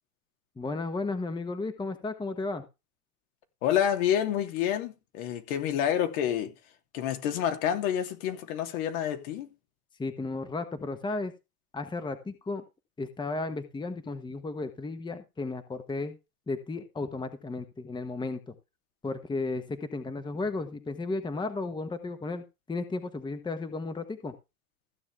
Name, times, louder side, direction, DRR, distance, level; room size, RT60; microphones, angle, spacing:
voice 1, 0.6-2.6 10.0-11.3 11.7-12.6 13.0-16.2 16.5-18.5 19.0-24.4, left 3 dB, 10° left, 1.3 m, -34 dB
voice 2, 3.6-6.5 6.9-9.5, left 10 dB, 65° left, 3.1 m, -28 dB
15.5 x 7.3 x 3.6 m
supercardioid pair, 125°, 45 cm